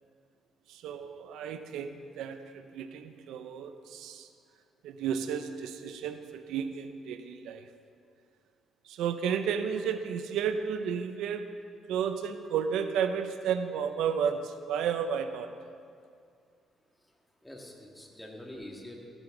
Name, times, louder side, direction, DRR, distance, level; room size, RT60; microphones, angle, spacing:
voice 1, 0.7-4.3 4.8-7.7 8.8-11.5 11.9-15.5, right 7 dB, 85° right, 9 dB, 0.6 m, -32 dB
voice 2, 17.4-19.0, left 1 dB, 10° left, 0 dB, 2.0 m, -45 dB
14.5 x 11.0 x 3.8 m, 2.3 s
cardioid pair, 90°, 0 cm